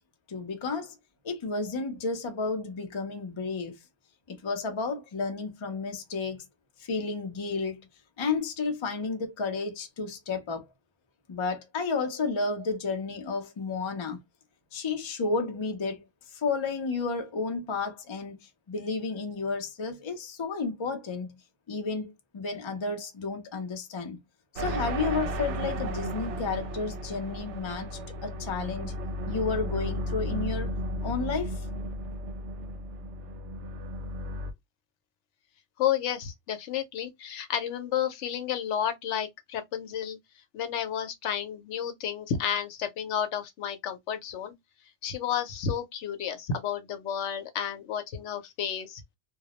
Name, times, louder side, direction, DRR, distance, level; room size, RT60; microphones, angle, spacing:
voice 1, 0.3-0.9 1.2-3.8 4.3-6.4 6.8-7.8 8.2-10.7 11.3-14.2 14.7-16.0 16.3-18.4 18.7-21.3 21.7-24.2 24.5-28.9 29.3-30.7 31.0-31.6, left 4 dB, 40° left, 0.4 m, -32 dB
sound 1, 24.6-34.5, equal, 80° right, 0.9 m, -34 dB
voice 2, 35.8-40.2 40.5-44.5 45.0-49.2, left 9 dB, 85° left, 0.9 m, -31 dB
2.3 x 2.0 x 2.8 m
omnidirectional pair, 1.2 m